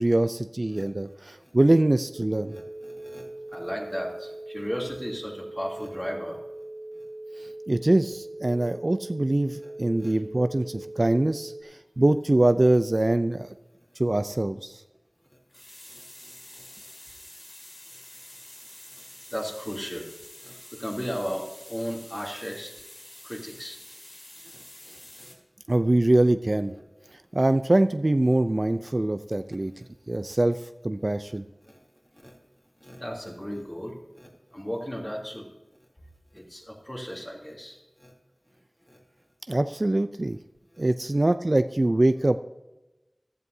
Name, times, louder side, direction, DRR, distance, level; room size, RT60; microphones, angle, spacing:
voice 1, 0.0-2.5 7.7-13.5 14.0-14.8 25.7-26.7 27.3-29.7 30.1-30.6 30.8-31.4 39.5-40.4 40.8-42.4, right 1 dB, 50° right, 11 dB, 0.4 m, -23 dB
sound 1, 2.1-11.6, right 1 dB, 70° right, 1.1 m, -41 dB
voice 2, 2.5-6.4 6.9-7.0 9.6-9.7 10.0-10.2 15.3-15.4 15.9-16.4 16.8-16.9 18.9-19.0 19.3-20.1 20.4-22.7 23.2-23.8 24.5-24.6 24.9-25.4 29.8-29.9 31.3-31.8 32.2-32.4 32.8-35.5 36.3-38.1 38.8-39.0 40.7-40.8, equal, 20° left, -1 dB, 2.9 m, -36 dB
sound 2, 15.5-25.3, left 1 dB, 55° left, 2.8 m, -47 dB
15.0 x 12.5 x 2.7 m, 1.0 s
wide cardioid pair, 40°, 0 cm